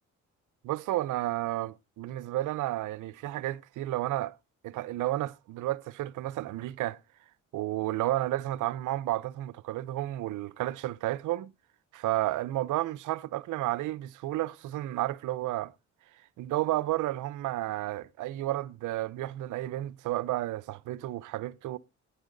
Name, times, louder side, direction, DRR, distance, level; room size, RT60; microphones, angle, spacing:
voice 1, 0.6-4.3 4.6-7.0 7.5-11.5 11.9-15.7 16.4-21.8, right 15 dB, 80° right, 0.7 m, -32 dB
11.5 x 9.9 x 3.9 m
cardioid pair, 90°, 30 cm